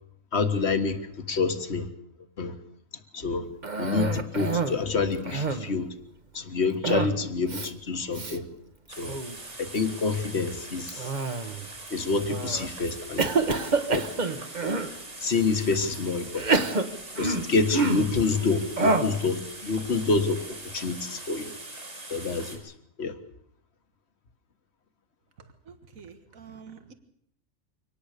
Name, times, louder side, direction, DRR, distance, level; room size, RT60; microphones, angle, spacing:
voice 1, 0.3-1.9 2.4-2.5 3.1-3.5 3.8-5.9 6.3-8.5 9.0-9.2 9.6-11.1 11.9-13.3 13.6-14.1 15.2-16.7 17.2-20.4 20.7-21.5 22.1-22.7 23.0-23.2, left 4 dB, 55° left, 8 dB, 1.9 m, -27 dB
Cough, 3.6-4.8 5.1-5.8 6.8-7.2 7.5-7.7 8.1-8.4 8.9-9.4 10.9-11.7 12.3-12.7 13.2-14.9 15.6-15.7 16.3-18.2 18.8-19.2, right 3 dB, 35° right, 1.3 m, -27 dB
sound 1, 8.9-22.6, right 2 dB, 70° right, 5.7 m, -42 dB
voice 2, 25.4-26.9, right 6 dB, 85° right, 8 dB, 2.0 m, -48 dB
24.5 x 19.0 x 6.7 m, 0.70 s
omnidirectional pair, 1.4 m